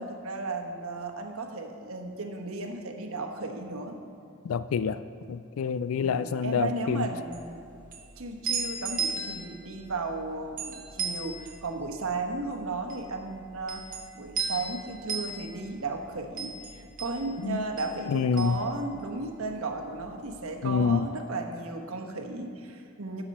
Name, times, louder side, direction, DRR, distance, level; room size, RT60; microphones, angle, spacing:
voice 1, 0.0-3.9 6.0-7.6 8.2-13.8 14.1-23.2, right 3 dB, 80° right, 3 dB, 1.1 m, -35 dB
voice 2, 4.5-5.0 5.3-7.0 17.4-17.6 18.1-18.6 20.6-21.1, left 6 dB, 80° left, 14 dB, 0.3 m, -27 dB
sound 1, 7.2-19.5 19.8-20.8, right 5 dB, 40° right, 1.2 m, -36 dB
16.0 x 7.0 x 4.2 m, 2.6 s
head